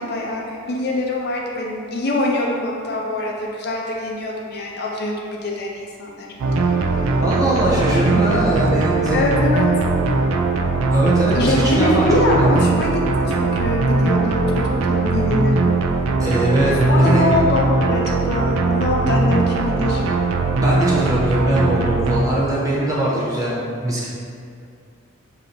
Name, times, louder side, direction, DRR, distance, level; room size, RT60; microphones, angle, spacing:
voice 1, 0.0-6.3 9.1-9.7 11.3-15.7 16.9-20.1, left 2 dB, 50° left, -1 dB, 0.5 m, -23 dB
sound 1, 6.4-22.2, right 3 dB, 80° right, 0.3 m, -20 dB
voice 2, 7.2-9.4 10.9-12.6 16.2-17.3 20.6-24.1, right 1 dB, 15° right, -7 dB, 0.8 m, -21 dB
5.8 x 2.7 x 2.6 m, 2.4 s
head